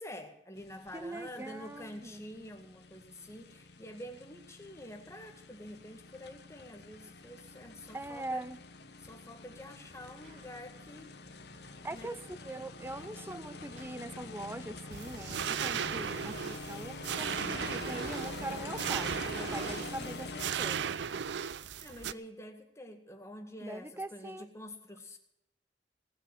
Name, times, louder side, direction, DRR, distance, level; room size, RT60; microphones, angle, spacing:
voice 1, 0.0-8.4 9.0-11.1 11.9-12.2 21.8-25.2, left 1 dB, 15° left, 4 dB, 1.9 m, -47 dB
sound 1, 0.6-20.5, left 3 dB, 65° left, 1.2 m, -46 dB
voice 2, 0.9-2.2 7.9-8.6 11.8-21.0 23.6-24.5, right 2 dB, 15° right, 15 dB, 0.5 m, -42 dB
sound 2, 9.6-20.5 21.2-21.3, right 1 dB, 50° right, 3.2 m, -49 dB
sound 3, 14.9-22.1, right 7 dB, 85° right, 0.5 m, -36 dB
18.5 x 6.5 x 9.3 m, 0.81 s
head